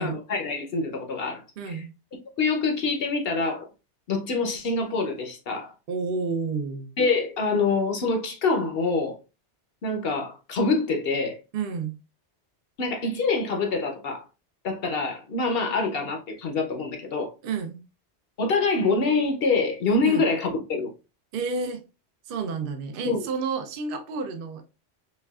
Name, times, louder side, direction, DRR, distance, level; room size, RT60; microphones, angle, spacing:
voice 1, 0.0-1.8 2.4-3.7 4.1-5.7 7.0-9.2 9.8-11.4 12.8-14.2 14.6-17.3 18.4-20.9 23.0-23.3, left 3 dB, 60° left, 0.8 m, -25 dB
voice 2, 1.6-1.9 5.9-7.0 11.5-12.0 17.4-17.8 20.0-20.3 21.3-21.8 22.3-24.6, right 5 dB, 60° right, 0.6 m, -30 dB
5.3 x 2.3 x 2.3 m
omnidirectional pair, 1.2 m